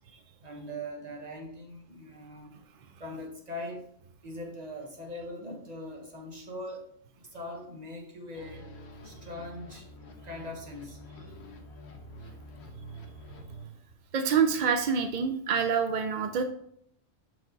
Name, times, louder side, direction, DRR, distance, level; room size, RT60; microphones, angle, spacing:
voice 1, 0.4-2.5 3.0-3.8 4.2-6.9 7.3-8.6 9.0-9.8 10.2-11.0, left 1 dB, 30° right, 1 dB, 1.2 m, -41 dB
sound 1, 8.3-13.7, equal, 60° left, 1.1 m, -47 dB
voice 2, 14.1-16.4, right 6 dB, 70° right, 7 dB, 0.4 m, -26 dB
5.7 x 5.0 x 3.9 m, 0.70 s
omnidirectional pair, 1.4 m